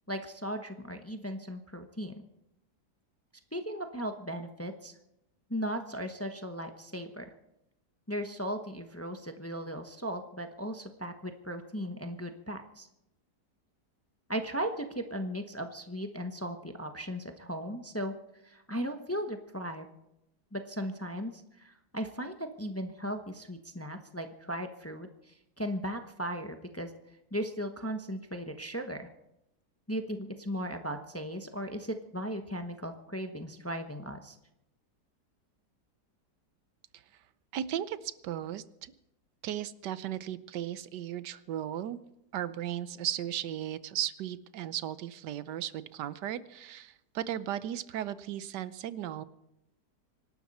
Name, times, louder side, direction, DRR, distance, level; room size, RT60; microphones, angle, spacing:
voice 1, 0.1-2.3 3.5-4.9 5.5-7.3 8.1-12.9 14.3-18.1 18.4-19.9 20.5-26.9 27.3-29.1 29.9-34.4, equal, 10° left, 6 dB, 0.9 m, -37 dB
voice 2, 37.5-38.9 39.4-42.0 42.3-49.2, right 11 dB, 85° right, 15 dB, 1.4 m, -36 dB
25.5 x 12.0 x 4.2 m, 0.87 s
omnidirectional pair, 1.8 m